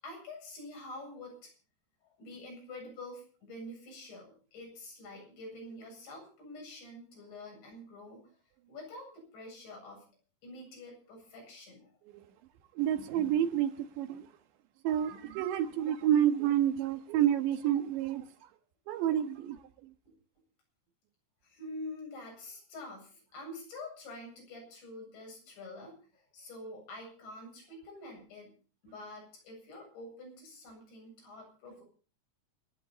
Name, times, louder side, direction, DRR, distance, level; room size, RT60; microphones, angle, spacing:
voice 1, 0.0-1.5 2.0-8.2 8.7-10.1 10.4-11.9 20.1-20.2 21.4-28.6 28.8-31.8, left 1 dB, 90° left, 10.0 m, -47 dB
voice 2, 12.8-14.3 14.8-18.3 18.9-19.6, right 10 dB, 85° right, 3.7 m, -29 dB
28.0 x 11.0 x 4.2 m
omnidirectional pair, 5.0 m